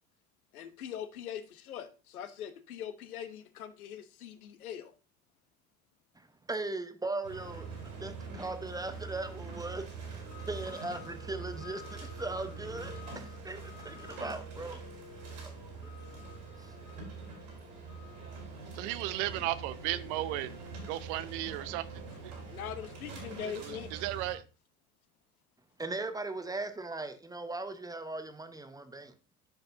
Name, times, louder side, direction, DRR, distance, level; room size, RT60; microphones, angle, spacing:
voice 1, 0.5-4.9 22.5-24.0, left 9 dB, 75° left, 0.9 m, -42 dB
voice 2, 6.2-7.7 8.0-14.8 15.4-16.0 16.6-16.7 25.8-29.1, right 2 dB, 10° right, 0.9 m, -39 dB
sound 1, 7.2-24.3, right 3 dB, 75° right, 4.0 m, -44 dB
voice 3, 18.7-20.6 20.9-21.8 22.2-22.3 23.4-24.4, right 15 dB, 55° right, 0.7 m, -35 dB
13.5 x 5.2 x 2.6 m
figure-of-eight pair, 70°, 44 cm